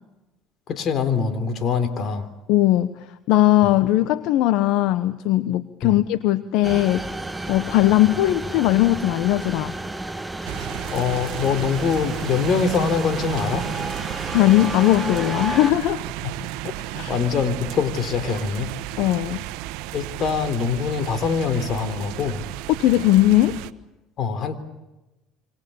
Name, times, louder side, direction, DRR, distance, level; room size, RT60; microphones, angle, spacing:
voice 1, 0.7-2.3 5.8-6.0 10.9-13.7 16.2-16.3 16.6-18.7 19.9-22.4 24.2-24.6, left 5 dB, 50° left, 10 dB, 3.7 m, -24 dB
voice 2, 2.5-7.1 7.5-9.7 14.3-16.0 17.0-17.1 19.0-19.4 22.8-23.6, left 15 dB, 75° left, 13 dB, 1.0 m, -19 dB
sound 1, 6.6-15.7, right 2 dB, 10° right, 1.2 m, -32 dB
sound 2, 10.4-23.7, right 16 dB, 80° right, 1.2 m, -33 dB
27.5 x 26.0 x 7.1 m, 1.0 s
supercardioid pair, 95°, 0 cm